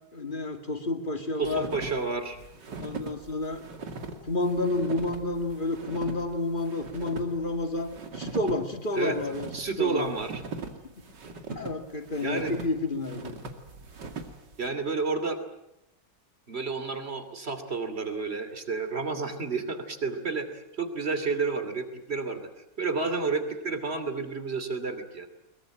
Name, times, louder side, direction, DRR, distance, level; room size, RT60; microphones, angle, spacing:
voice 1, 0.1-1.7 2.8-3.6 4.2-9.5 9.8-10.1 11.5-13.4, left 2 dB, 30° left, 6 dB, 2.4 m, -30 dB
voice 2, 1.4-2.4 8.9-9.2 9.5-10.4 12.2-12.5 14.6-15.4 16.5-22.4 22.8-25.3, right 4 dB, 35° right, 9 dB, 3.0 m, -30 dB
sound 1, 1.4-14.7, right 4 dB, 75° right, 2.9 m, -41 dB
22.5 x 22.5 x 8.9 m, 0.83 s
omnidirectional pair, 1.9 m